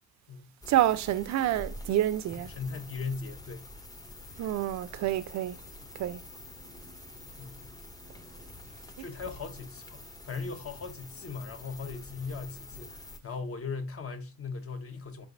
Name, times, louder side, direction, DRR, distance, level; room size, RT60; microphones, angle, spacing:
sound 1, 0.6-13.2, left 1 dB, 10° left, 0.6 m, -47 dB
voice 1, 0.7-2.5 4.4-5.6 5.9-6.2, right 13 dB, 65° right, 0.4 m, -28 dB
voice 2, 2.5-3.6 7.4-7.7 9.0-15.3, left 4 dB, 50° left, 0.9 m, -38 dB
4.7 x 3.3 x 2.5 m
cardioid pair, 90°, 30 cm